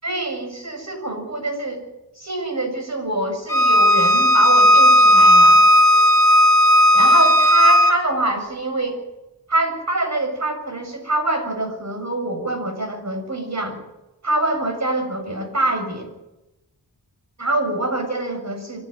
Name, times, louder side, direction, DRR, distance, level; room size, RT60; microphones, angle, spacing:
voice 1, 0.0-1.8 2.2-5.6 6.9-9.0 9.5-13.8 14.2-16.1 17.4-18.8, right 2 dB, 40° right, 4 dB, 7.2 m, -25 dB
Bowed string instrument, 3.5-7.9, left 1 dB, 10° left, 2.7 m, -13 dB
25.5 x 12.0 x 9.3 m, 0.96 s
wide cardioid pair, 90°, 41 cm